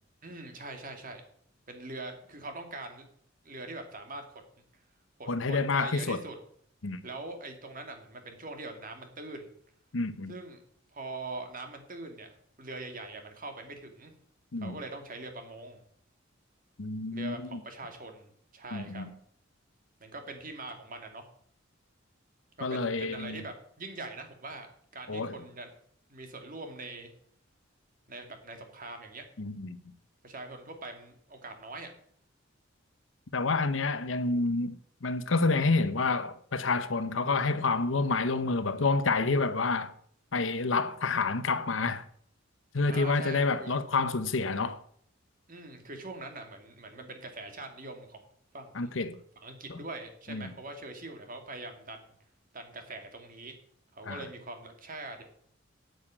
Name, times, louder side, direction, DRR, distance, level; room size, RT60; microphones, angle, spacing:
voice 1, 0.2-1.2 1.7-3.1 3.4-4.3 5.2-6.4 7.0-9.5 10.3-10.6 10.9-12.3 12.6-14.1 14.6-15.8 17.1-19.0 20.0-21.3 22.6-24.7 24.9-25.7 26.1-27.1 28.1-29.3 30.2-31.9 42.8-43.8 45.5-48.2 48.5-48.9 49.4-52.0 52.5-53.5 53.9-55.2, right 2 dB, 45° right, 2.4 m, -42 dB
voice 2, 5.3-6.2 6.8-7.0 9.9-10.4 14.5-14.8 16.8-17.6 18.7-19.1 22.6-23.4 25.1-25.4 29.4-29.8 33.3-39.9 40.3-42.1 42.7-44.8 48.7-49.2 49.7-49.8 50.3-50.5 54.1-54.2, left 3 dB, 70° left, 0.9 m, -29 dB
8.9 x 8.1 x 8.8 m
head